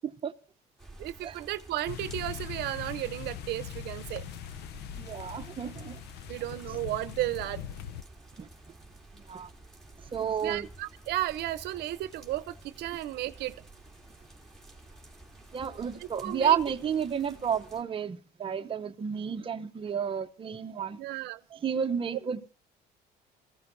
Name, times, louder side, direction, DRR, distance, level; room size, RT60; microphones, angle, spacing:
sound 1, 0.8-17.8, right 2 dB, ahead, 2.9 m, -51 dB
voice 1, 1.0-4.2 6.3-7.6 10.4-13.6 16.0-16.6 21.0-21.4, right 15 dB, 80° right, 0.8 m, -34 dB
sound 2, 1.9-8.0, left 10 dB, 80° left, 0.6 m, -41 dB
voice 2, 5.0-6.0 8.4-8.5 9.3-9.5 10.1-10.7 15.5-21.0 21.5-22.5, right 7 dB, 30° right, 0.8 m, -31 dB
23.5 x 15.0 x 2.6 m
cardioid pair, 110°, 17 cm